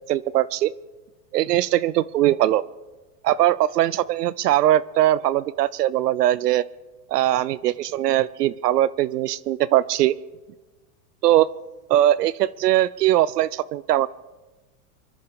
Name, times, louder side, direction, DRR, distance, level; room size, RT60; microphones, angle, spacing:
voice 1, 0.1-0.7 1.3-2.6 3.2-6.6 7.1-10.1 11.2-11.5 11.9-14.1, right 13 dB, 90° right, 19 dB, 0.7 m, -20 dB
25.0 x 10.5 x 4.8 m, 1.2 s
hypercardioid pair, 125°, 46 cm